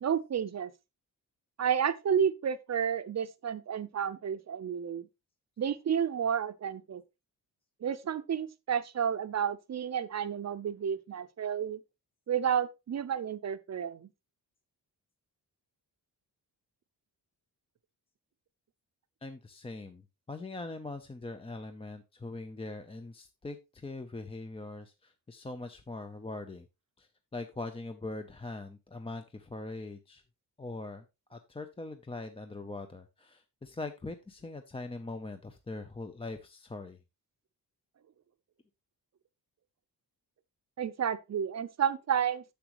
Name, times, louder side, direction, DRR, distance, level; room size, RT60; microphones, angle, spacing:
voice 1, 0.0-0.7 1.6-5.1 5.6-7.0 7.8-11.8 12.3-14.1 40.8-42.4, right 8 dB, 40° right, 0.7 m, -31 dB
voice 2, 19.2-26.7 27.0-30.2 30.6-31.0 31.3-37.0, left 2 dB, 15° left, 0.5 m, -42 dB
10.0 x 7.1 x 3.0 m
wide cardioid pair, 165°, 40 cm